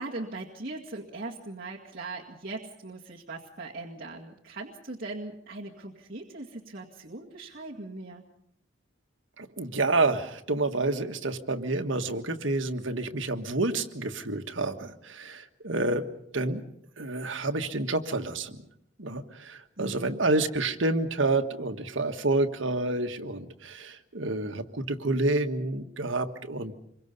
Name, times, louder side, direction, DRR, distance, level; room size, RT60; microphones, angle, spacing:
voice 1, 0.0-8.2 19.8-20.2, right 2 dB, 45° right, -4 dB, 2.1 m, -40 dB
voice 2, 9.4-16.0 16.3-16.6 17.0-18.6 19.0-26.7, right 2 dB, 70° right, 6 dB, 1.6 m, -29 dB
27.0 x 23.5 x 5.4 m, 0.73 s
head